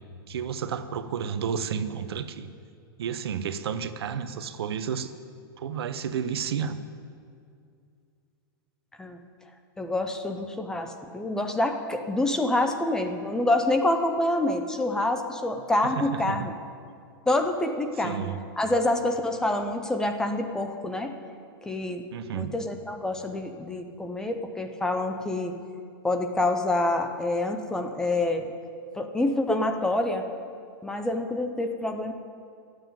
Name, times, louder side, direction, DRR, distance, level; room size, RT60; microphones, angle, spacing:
voice 1, 0.3-2.5 3.0-5.1 5.6-6.8 15.8-16.5 18.0-18.4 22.1-22.5, right 7 dB, 85° right, 11 dB, 0.8 m, -31 dB
voice 2, 9.8-16.5 17.3-21.2 21.7-22.0 22.3-25.5 26.0-28.5 28.9-30.2 30.8-32.1, left 2 dB, 5° left, 6 dB, 0.4 m, -27 dB
11.5 x 7.9 x 9.1 m, 2.3 s
supercardioid pair, 165°, 13 cm